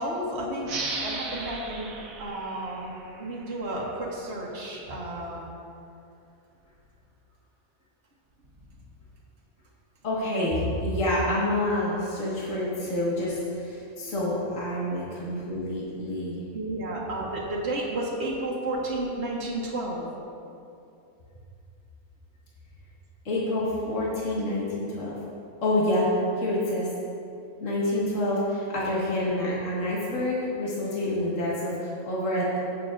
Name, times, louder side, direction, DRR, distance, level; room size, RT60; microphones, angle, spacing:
voice 1, 0.0-1.9 2.2-2.9 3.2-5.4 14.8-15.0 16.5-20.1 27.9-28.0, right 1 dB, 45° right, -4 dB, 1.5 m, -32 dB
sound 1, 0.6-3.9, right 3 dB, 65° right, 1.4 m, -36 dB
voice 2, 10.0-16.4 23.3-25.1 25.6-26.1 26.4-26.9 27.6-32.6, left 1 dB, 55° left, -7 dB, 2.1 m, -27 dB
16.5 x 7.5 x 2.6 m, 2.7 s
omnidirectional pair, 1.6 m